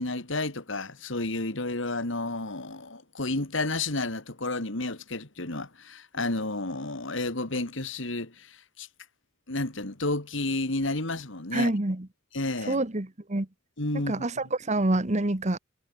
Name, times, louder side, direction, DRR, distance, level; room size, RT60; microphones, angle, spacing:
voice 1, 0.0-8.9 9.5-11.7 12.3-12.8 13.8-14.3, left 2 dB, 70° left, 2.7 m, -31 dB
voice 2, 11.5-12.1 12.7-13.5 13.9-15.6, right 2 dB, 35° right, 1.4 m, -27 dB
head